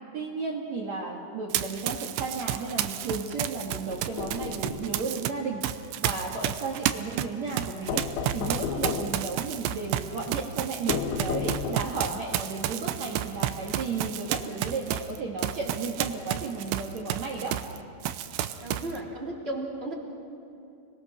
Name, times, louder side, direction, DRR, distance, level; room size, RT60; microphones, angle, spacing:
voice 1, 0.1-5.7 6.0-8.0 8.3-17.5, right 4 dB, 55° right, -1 dB, 2.1 m, -34 dB
Run, 1.5-5.3 5.6-17.8 18.0-19.0, right 12 dB, 80° right, 2.7 m, -31 dB
sound 1, 3.9-4.9 7.9-9.2 10.9-12.0, left 6 dB, 90° left, 3.7 m, -32 dB
voice 2, 18.6-19.9, right 2 dB, 15° right, -2 dB, 2.8 m, -34 dB
29.5 x 21.0 x 6.5 m, 2.6 s
omnidirectional pair, 5.3 m